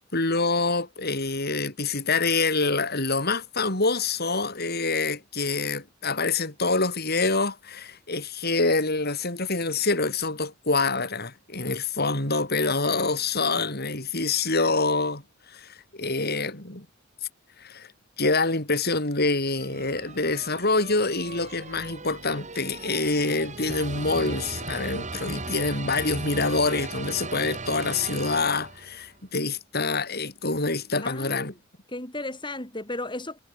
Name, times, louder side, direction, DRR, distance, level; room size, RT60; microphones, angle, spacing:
voice 1, 0.1-15.2 15.5-16.9 17.6-17.9 18.2-31.5, left 3 dB, 50° left, 7.3 m, -26 dB
sound 1, 19.5-29.0, right 3 dB, 35° right, 7.6 m, -37 dB
voice 2, 31.0-31.6 31.9-33.4, left 2 dB, 25° left, 6.6 m, -34 dB
head